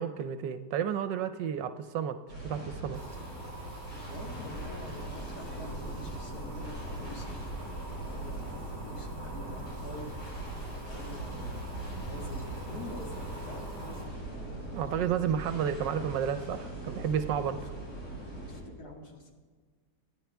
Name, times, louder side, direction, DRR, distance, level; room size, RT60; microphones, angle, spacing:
voice 1, 0.0-3.0 14.7-17.7, right 8 dB, 80° right, 10 dB, 1.4 m, -32 dB
sound 1, 2.3-18.6, right 2 dB, 80° left, 5.8 m, -40 dB
sound 2, 2.9-14.0, right 1 dB, 15° right, 4.9 m, -47 dB
sound 3, 3.4-15.4, right 1 dB, 40° left, 1.5 m, -48 dB
voice 2, 3.9-7.5 8.0-10.1 10.8-14.6 17.6-17.7 18.5-19.3, left 1 dB, 55° left, 0 dB, 2.6 m, -47 dB
26.5 x 10.5 x 3.5 m, 1.5 s
omnidirectional pair, 1.9 m